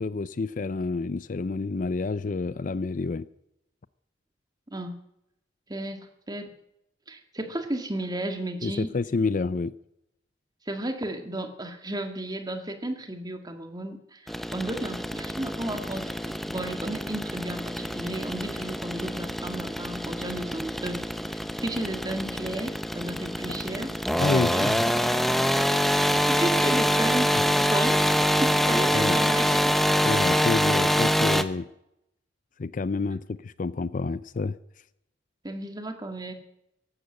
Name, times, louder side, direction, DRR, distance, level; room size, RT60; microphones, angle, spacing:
voice 1, 0.0-3.3 8.6-9.7 24.2-24.8 28.9-29.2 30.0-31.7 32.6-34.5, left 3 dB, 45° left, 0.5 m, -28 dB
voice 2, 5.7-6.5 7.1-9.0 10.7-21.0 21.3-24.0 24.5-24.7 25.4-27.3 27.6-28.1 28.4-29.7 35.4-36.3, right 1 dB, 20° right, 1.9 m, -33 dB
sound 1, 14.3-31.4, equal, ahead, 0.7 m, -25 dB
15.0 x 12.0 x 7.8 m
head